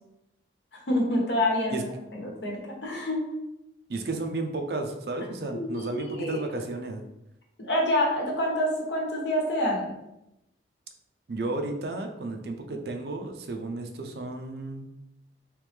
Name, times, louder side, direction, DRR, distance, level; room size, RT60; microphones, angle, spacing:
voice 1, 0.7-3.2 5.5-6.5 7.6-9.9, left 1 dB, 85° left, -1 dB, 1.0 m, -27 dB
voice 2, 3.9-7.0 11.3-14.9, right 2 dB, 65° right, 4 dB, 0.5 m, -33 dB
3.2 x 3.0 x 3.4 m, 0.86 s
head